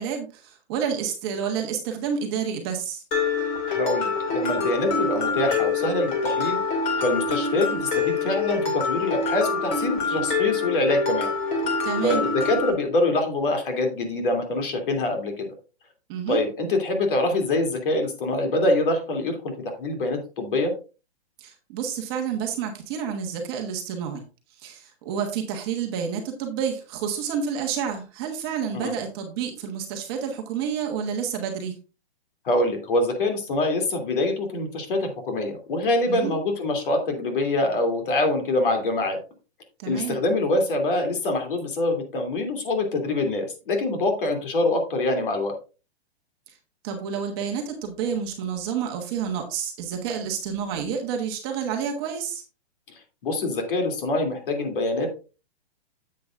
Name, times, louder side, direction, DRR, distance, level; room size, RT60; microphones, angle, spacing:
voice 1, 0.0-3.0 11.8-12.2 16.1-16.4 21.4-24.2 24.6-31.8 36.1-36.3 39.8-40.2 46.5-46.6 46.8-52.4, right 7 dB, 25° right, 2 dB, 1.2 m, -29 dB
Mallet percussion, 3.1-12.7, left 4 dB, 20° left, 2.1 m, -26 dB
voice 2, 3.7-6.6 7.0-11.3 12.0-15.5 16.3-19.5 19.8-20.7 28.7-28.9 32.4-39.2 39.8-45.6 52.9-55.1, left 2 dB, 55° left, 4 dB, 3.0 m, -25 dB
10.0 x 7.9 x 2.5 m, 0.33 s
hypercardioid pair, 170°, 32 cm